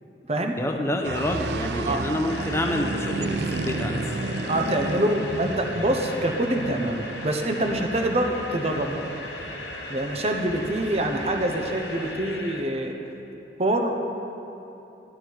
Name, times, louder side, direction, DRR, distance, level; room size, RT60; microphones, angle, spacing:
voice 1, 0.6-4.2 4.5-4.8, left 1 dB, 15° left, 3 dB, 0.8 m, -28 dB
sound 1, 1.0-12.2, right 3 dB, 65° right, 0.5 m, -34 dB
sound 2, 2.3-12.6, left 2 dB, 80° left, 1.4 m, -38 dB
voice 2, 4.5-9.0 9.9-12.9 13.6-14.0, right 1 dB, 35° right, 3 dB, 0.9 m, -25 dB
13.0 x 11.0 x 4.6 m, 3.0 s
head